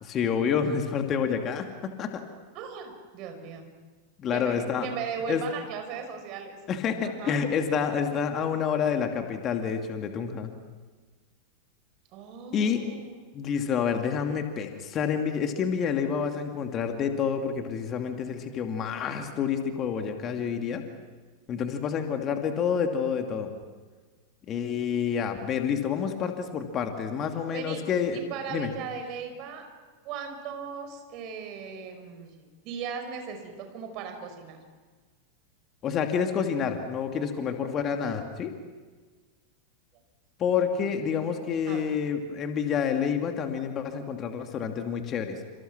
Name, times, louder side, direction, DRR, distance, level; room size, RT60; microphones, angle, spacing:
voice 1, 0.1-2.2 4.2-4.9 5.3-5.4 6.7-10.5 12.5-12.8 13.3-20.8 21.5-23.6 24.5-28.2 28.5-28.7 35.8-38.5 40.4-45.4, left 7 dB, 30° left, 5 dB, 2.5 m, -28 dB
voice 2, 2.5-3.7 4.3-6.6 7.0-7.4 12.1-13.3 27.4-27.8 28.1-29.6 30.0-34.6 40.8-41.2 41.7-41.9, right 6 dB, 40° right, 5 dB, 5.5 m, -38 dB
29.5 x 27.5 x 6.1 m, 1.4 s
figure-of-eight pair, 90°, 0 cm